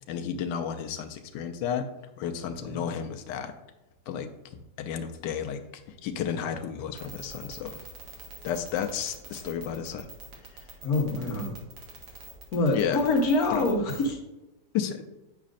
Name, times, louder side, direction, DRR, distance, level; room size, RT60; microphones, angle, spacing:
voice 1, 0.1-1.9 2.2-3.5 4.1-4.3 4.8-5.6 6.0-7.8 8.4-10.1 10.5-10.7 12.7-13.0 13.5-13.7 14.7-15.1, left 8 dB, 80° left, 6 dB, 1.2 m, -32 dB
sound 1, 7.0-14.1, right 3 dB, 65° right, 1.8 m, -44 dB
voice 2, 10.8-11.6 12.5-14.2, left 2 dB, 60° left, 0 dB, 1.4 m, -25 dB
8.4 x 5.0 x 2.4 m, 0.99 s
omnidirectional pair, 1.9 m